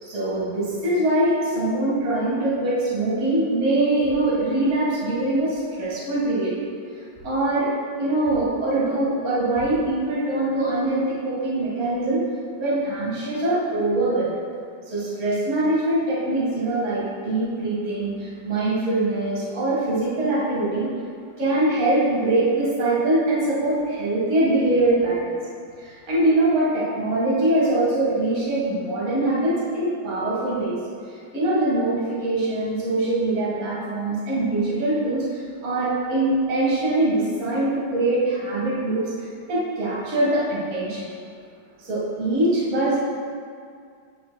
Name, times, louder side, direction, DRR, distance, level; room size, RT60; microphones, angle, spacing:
voice 1, 0.0-6.5 7.2-7.7 8.0-12.2 12.6-14.3 14.9-20.9 21.4-25.3 25.8-30.8 31.1-39.0 39.5-41.1 41.8-43.0, right 2 dB, 40° right, -8 dB, 1.9 m, -23 dB
9.5 x 5.8 x 2.2 m, 2.2 s
omnidirectional pair, 2.2 m